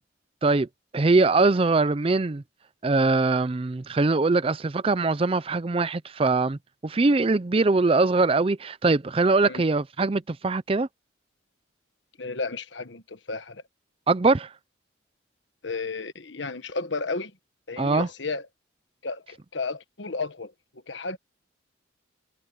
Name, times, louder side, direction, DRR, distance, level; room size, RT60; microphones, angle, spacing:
voice 1, 0.9-2.4 2.8-10.9 14.1-14.5 17.8-18.1, right 3 dB, 30° right, 0.4 m, -22 dB
voice 2, 12.2-13.6 15.6-17.3 17.7-18.5 19.0-20.5 20.9-21.2, left 3 dB, 70° left, 1.3 m, -33 dB
head